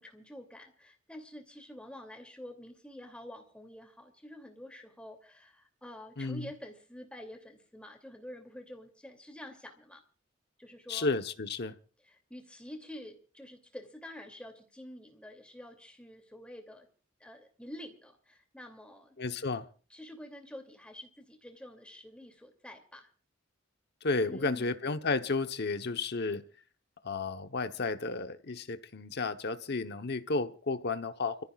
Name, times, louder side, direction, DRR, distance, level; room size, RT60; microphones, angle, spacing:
voice 1, 0.0-10.0 10.6-11.1 12.0-16.9 17.2-19.2 19.9-23.1 24.1-24.9, left 1 dB, 5° left, 2.7 m, -48 dB
voice 2, 6.2-6.5 10.9-11.7 19.2-19.7 24.0-26.4 27.0-31.4, left 3 dB, 55° left, 1.0 m, -32 dB
29.5 x 14.5 x 2.4 m
head